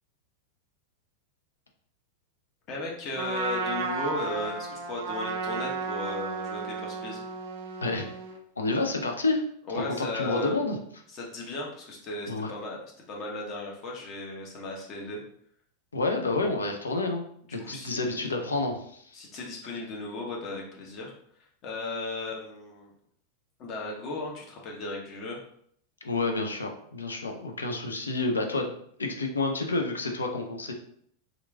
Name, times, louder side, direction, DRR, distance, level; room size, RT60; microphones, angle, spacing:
voice 1, 2.7-7.2 9.7-10.6 11.1-12.8 13.1-15.2 17.5-18.3 19.1-21.1 21.6-22.9 23.6-25.5, left 2 dB, 35° left, -1 dB, 0.8 m, -36 dB
Trumpet, 3.1-8.4, right 4 dB, 55° right, 0.4 m, -33 dB
voice 2, 8.6-9.4 9.8-10.8 12.3-12.5 15.9-17.2 17.5-19.2 26.0-28.7 29.0-30.7, left 3 dB, 75° left, 3 dB, 0.4 m, -29 dB
2.9 x 2.4 x 2.2 m, 0.65 s
figure-of-eight pair, 90°, 0 cm